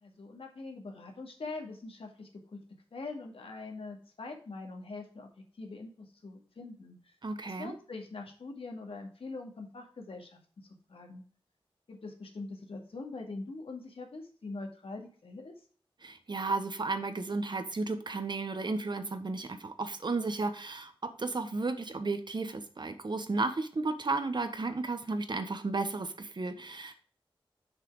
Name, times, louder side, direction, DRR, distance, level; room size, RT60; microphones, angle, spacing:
voice 1, 0.0-2.6 2.9-5.3 5.6-7.1 7.4-11.2 11.9-15.5, left 3 dB, 80° left, 2 dB, 2.2 m, -43 dB
voice 2, 7.2-7.7 16.0-26.9, right 3 dB, 50° right, 8 dB, 1.3 m, -33 dB
6.7 x 5.9 x 4.8 m, 0.42 s
wide cardioid pair, 75°, 10 cm